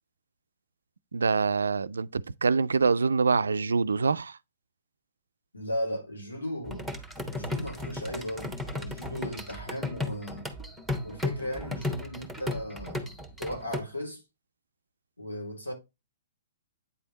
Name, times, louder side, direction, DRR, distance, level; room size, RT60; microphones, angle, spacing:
voice 1, 1.1-4.4, right 4 dB, 75° right, 0.3 m, -25 dB
voice 2, 5.5-6.9 7.3-10.5 11.0-14.2 15.2-15.7, equal, 90° left, 2.9 m, -36 dB
sound 1, 6.6-13.8, left 2 dB, 5° left, 1.2 m, -35 dB
8.8 x 3.6 x 3.9 m
figure-of-eight pair, 120°, 0 cm